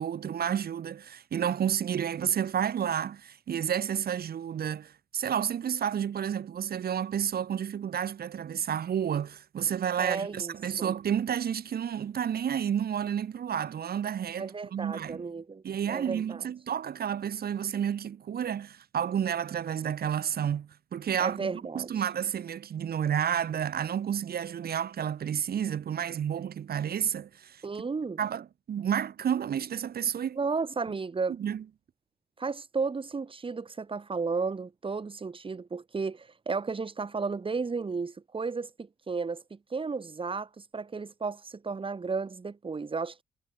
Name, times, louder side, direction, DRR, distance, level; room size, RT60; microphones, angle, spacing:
voice 1, 0.0-15.2 15.6-27.6 28.2-30.4 31.4-31.6, right 9 dB, 50° right, 1.2 m, -31 dB
voice 2, 10.0-10.9 14.4-16.4 21.2-21.9 27.6-28.2 30.4-31.4 32.4-43.2, right 4 dB, 25° right, 1.4 m, -33 dB
cardioid pair, 90°, 20 cm